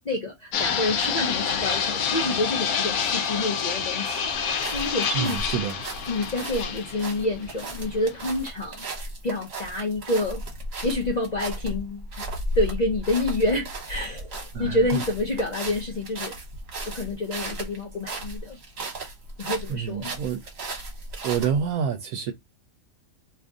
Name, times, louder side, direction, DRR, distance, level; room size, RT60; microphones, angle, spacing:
voice 1, 0.0-5.4 6.1-10.4 10.8-12.1 12.5-16.4 16.9-18.6 19.4-20.1, left 2 dB, 45° left, 0.5 m, -28 dB
Fixed-wing aircraft airplane, 0.5-8.5, left 7 dB, 75° left, 1.1 m, -28 dB
sound 1, 4.3-21.7, right 2 dB, 50° right, 1.2 m, -35 dB
voice 2, 5.1-5.8 14.5-14.8 19.7-20.4 21.2-22.3, right 7 dB, 75° right, 1.0 m, -27 dB
2.8 x 2.5 x 3.5 m
omnidirectional pair, 1.6 m